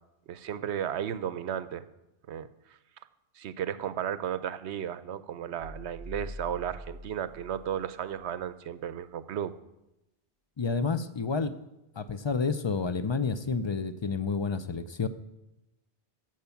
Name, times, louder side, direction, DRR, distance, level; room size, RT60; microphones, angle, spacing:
voice 1, 0.3-1.8 2.3-2.5 3.4-9.5, right 9 dB, 80° right, 14 dB, 0.9 m, -34 dB
sound 1, 5.6-8.6, equal, ahead, 0.9 m, -45 dB
voice 2, 10.6-11.5 12.0-15.1, left 4 dB, 35° left, 12 dB, 0.4 m, -29 dB
14.0 x 8.1 x 5.8 m, 0.92 s
omnidirectional pair, 1.2 m